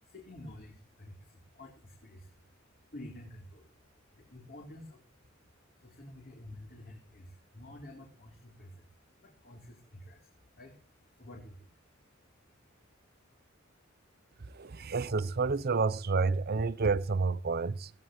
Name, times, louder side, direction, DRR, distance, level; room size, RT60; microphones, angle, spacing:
voice 1, 0.0-3.7 4.1-5.3 5.8-8.9 9.2-11.7 12.5-12.6, left 1 dB, 50° left, 3.5 m, -50 dB
voice 2, 14.5-17.9, right 4 dB, 50° right, 0.7 m, -29 dB
16.5 x 16.5 x 3.1 m
head